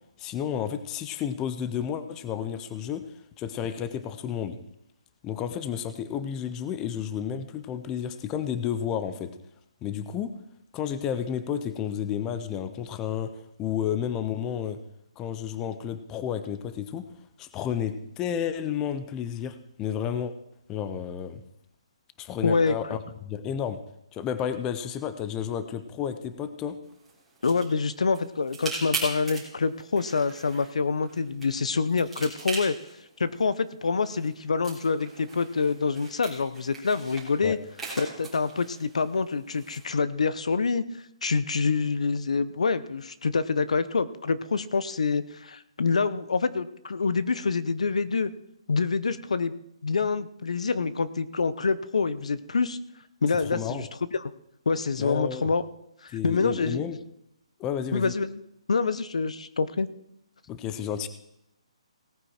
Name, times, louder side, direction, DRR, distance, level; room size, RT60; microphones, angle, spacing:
voice 1, 0.2-3.0 3.4-4.6 5.2-9.3 9.8-10.3 10.7-13.3 13.6-14.8 15.2-17.1 17.4-20.3 20.7-21.4 22.2-23.8 24.1-26.8 37.4-37.6 53.4-53.9 55.0-55.5 56.1-57.0 57.6-58.1 60.5-61.1, left 9 dB, 15° left, 11 dB, 0.6 m, -31 dB
voice 2, 22.4-23.0 27.4-32.8 33.2-37.6 38.0-40.9 41.2-48.3 48.7-49.5 49.8-52.8 53.2-53.9 54.1-54.3 54.7-55.6 56.0-56.8 57.9-58.4 58.7-59.9, left 4 dB, 80° left, 15 dB, 0.9 m, -26 dB
sound 1, 26.8-39.8, right 3 dB, 5° right, 3.6 m, -41 dB
17.5 x 9.3 x 4.4 m, 0.78 s
hypercardioid pair, 165°, 3 cm